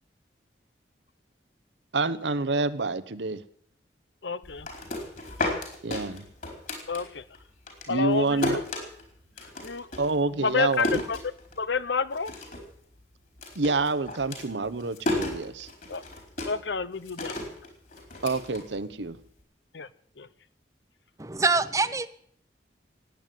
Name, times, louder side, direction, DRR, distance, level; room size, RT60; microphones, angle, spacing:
voice 1, 1.9-3.4 5.8-6.3 7.9-8.6 10.0-11.0 13.5-15.7 18.2-19.2, right 3 dB, 90° right, 13 dB, 1.0 m, -27 dB
voice 2, 4.2-4.7 6.9-7.2 7.9-8.6 9.6-9.9 10.4-11.2 11.6-12.3 15.9-16.0 16.4-17.3 19.7-19.9 20.2-20.3, left 5 dB, 85° left, 16 dB, 0.8 m, -29 dB
sound 1, 4.4-7.4 7.7-11.8 12.1-12.7 13.0-19.2, left 1 dB, 50° left, 4.6 m, -34 dB
voice 3, 21.2-22.1, right 3 dB, 20° right, 13 dB, 0.8 m, -24 dB
16.5 x 9.4 x 9.2 m, 0.62 s
head